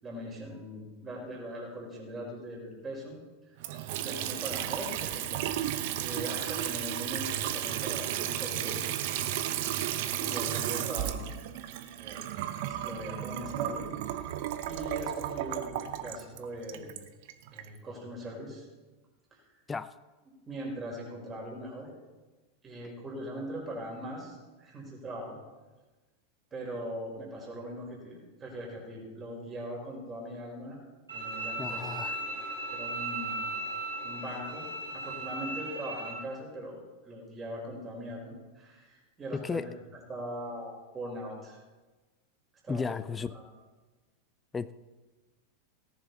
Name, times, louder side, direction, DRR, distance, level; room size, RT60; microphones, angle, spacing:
voice 1, 0.0-3.2 3.5-3.6 4.0-5.4 6.0-8.8 10.2-11.3 12.0-12.2 12.6-14.3 14.7-16.9 17.5-18.7 19.3-19.4 20.5-21.9 22.6-25.4 26.5-30.8 31.1-32.3 32.7-33.4 34.0-34.7 34.9-36.8 37.0-41.6 42.6-43.0 43.3-43.4, equal, 25° right, -1 dB, 5.1 m, -41 dB
Water tap faucet / Sink (filling or washing) / Trickle dribble, 3.6-17.7, right 12 dB, 55° right, 0.9 m, -34 dB
Bowed string instrument, 31.1-36.1, right 2 dB, 80° right, 4.4 m, -36 dB
voice 2, 31.6-32.2 39.3-39.7 42.7-43.3 44.5-44.7, left 5 dB, 15° left, 16 dB, 0.5 m, -34 dB
18.0 x 10.5 x 4.2 m, 1.2 s
figure-of-eight pair, 90°, 0 cm